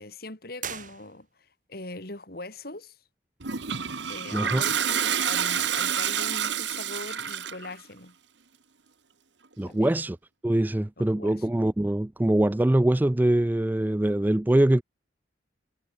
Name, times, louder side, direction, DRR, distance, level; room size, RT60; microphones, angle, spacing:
voice 1, 0.0-3.0 4.1-8.2 9.6-9.9 11.0-11.5, left 2 dB, 55° left, 3.2 m, -41 dB
sound 1, 0.5-1.6, right 8 dB, 45° right, 6.6 m, -40 dB
Toilet flush, 3.4-7.7, right 8 dB, 75° right, 1.5 m, -28 dB
voice 2, 4.3-4.6 9.6-10.2 10.4-14.8, right 1 dB, 10° right, 0.3 m, -23 dB
head